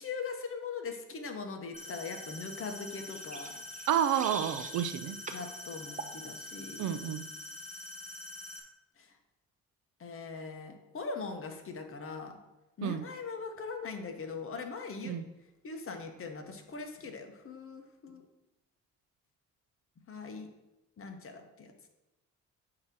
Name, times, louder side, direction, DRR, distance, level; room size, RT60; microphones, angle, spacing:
voice 1, 0.0-3.6 5.3-7.0 9.0-9.1 10.0-12.4 12.8-15.1 15.6-18.2 20.1-20.5 21.0-21.7, left 4 dB, 45° left, 5 dB, 1.1 m, -41 dB
sound 1, 1.7-8.6, left 1 dB, 20° left, 1.7 m, -45 dB
sound 2, 3.1-5.0 5.3-5.5 6.0-6.2, right 4 dB, 25° right, 0.9 m, -43 dB
voice 2, 3.9-5.2 6.8-7.2 12.8-13.0 15.0-15.2, right 10 dB, 70° right, 12 dB, 0.6 m, -30 dB
8.7 x 3.0 x 6.1 m, 1.0 s
cardioid pair, 90°, 30 cm